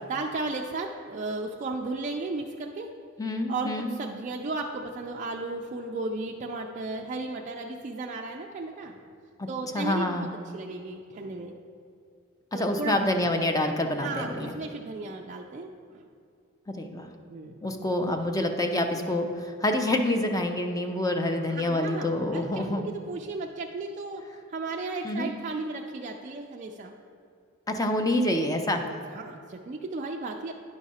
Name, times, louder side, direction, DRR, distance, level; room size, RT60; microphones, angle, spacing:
voice 1, 0.1-2.9 3.5-9.0 9.5-10.3 10.5-11.5 12.5-13.2 14.0-16.1 17.3-17.6 21.4-24.2 24.5-26.9 28.8-30.5, right 3 dB, 35° right, 0 dB, 0.4 m, -35 dB
voice 2, 3.2-3.9 9.4-9.5 9.7-10.3 12.5-14.5 16.8-17.1 17.6-22.8 25.0-25.3 27.7-29.0, left 1 dB, 15° left, 5 dB, 0.5 m, -27 dB
10.0 x 4.9 x 4.1 m, 2.3 s
head